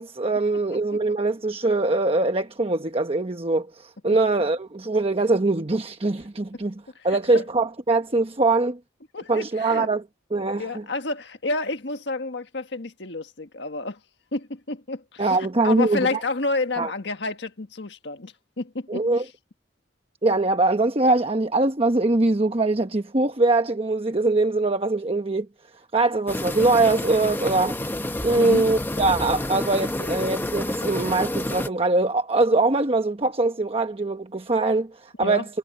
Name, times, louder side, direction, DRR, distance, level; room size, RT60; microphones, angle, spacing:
voice 1, 0.0-6.7 7.0-8.8 9.3-10.0 10.3-10.8 15.2-16.1 16.8-16.9 18.9-19.2 20.2-25.5 25.9-27.7 28.2-35.5, right 2 dB, 30° right, 1.1 m, -22 dB
voice 2, 6.9-7.4 9.1-9.9 10.5-14.0 14.3-15.4 15.6-19.1 28.3-28.7 35.2-35.4, left 3 dB, 70° left, 1.6 m, -30 dB
sound 1, 26.3-31.7, left 1 dB, 10° left, 1.0 m, -29 dB
head